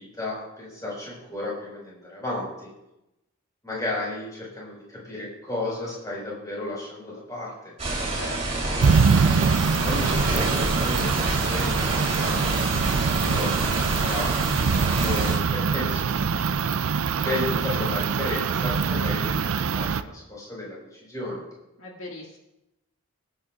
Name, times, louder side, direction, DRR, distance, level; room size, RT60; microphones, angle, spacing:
voice 1, 0.0-2.7 3.6-7.7 9.6-11.7 12.2-12.7 13.2-14.6 15.0-16.6 17.2-21.4, left 2 dB, 15° left, -5 dB, 4.8 m, -33 dB
sound 1, 7.8-15.4, right 2 dB, 30° right, 3.3 m, -28 dB
voice 2, 8.1-9.1 21.8-22.4, left 2 dB, 70° left, -2 dB, 2.0 m, -41 dB
sound 2, 8.8-20.0, right 5 dB, 80° right, 0.5 m, -24 dB
21.5 x 9.0 x 2.4 m, 0.89 s
head